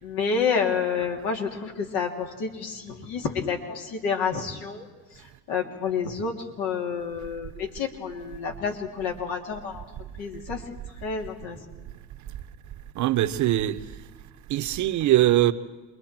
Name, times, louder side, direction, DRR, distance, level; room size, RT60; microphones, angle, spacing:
voice 1, 0.0-4.9 5.5-9.8 10.2-10.6 11.0-11.6, left 6 dB, 65° left, 3.3 m, -29 dB
voice 2, 12.9-13.8 14.5-15.5, right 14 dB, 50° right, 1.1 m, -22 dB
28.0 x 22.5 x 4.5 m
supercardioid pair, 95°, 38 cm